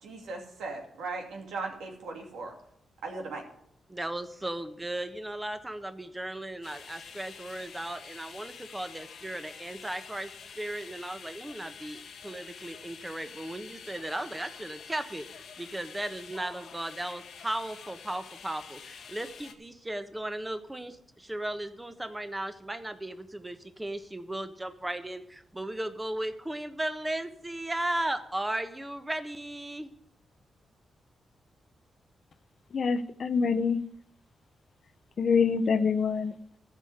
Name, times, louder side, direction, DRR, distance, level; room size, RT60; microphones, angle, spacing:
voice 1, 0.0-2.5 3.0-3.4, right 3 dB, 85° right, 1 dB, 2.6 m, -38 dB
voice 2, 3.9-29.9, right 1 dB, 15° right, 9 dB, 1.3 m, -36 dB
sound 1, 6.6-19.5, left 6 dB, 75° left, 1.2 m, -48 dB
voice 3, 32.7-33.8 35.2-36.3, left 5 dB, 60° left, 12 dB, 0.8 m, -25 dB
13.5 x 5.3 x 8.0 m, 0.76 s
cardioid pair, 60°, 0 cm